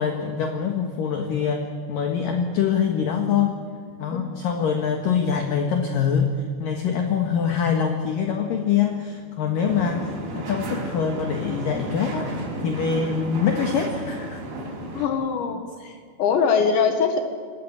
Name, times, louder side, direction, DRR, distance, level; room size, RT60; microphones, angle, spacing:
voice 1, 0.0-3.6 4.0-6.3 6.6-12.3 12.6-14.4, left 7 dB, 60° left, 4 dB, 2.9 m, -24 dB
sound 1, 9.7-15.1, right 1 dB, 60° right, 6.8 m, -33 dB
voice 2, 14.9-17.2, left 6 dB, 75° left, 6 dB, 3.9 m, -22 dB
27.0 x 19.5 x 8.8 m, 2.2 s
omnidirectional pair, 5.3 m